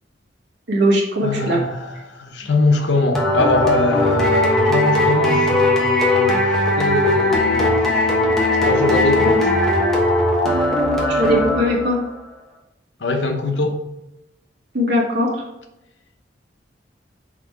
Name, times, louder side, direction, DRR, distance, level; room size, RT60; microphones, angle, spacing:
voice 1, 0.7-1.6 11.1-12.0 14.7-15.3, equal, 65° right, -3 dB, 2.1 m, -19 dB
voice 2, 1.2-7.7 8.6-9.5 13.0-13.8, left 2 dB, 80° left, 4 dB, 1.0 m, -22 dB
sound 1, 3.1-12.1, left 1 dB, ahead, 1.2 m, -18 dB
6.2 x 4.0 x 4.7 m, 0.89 s
head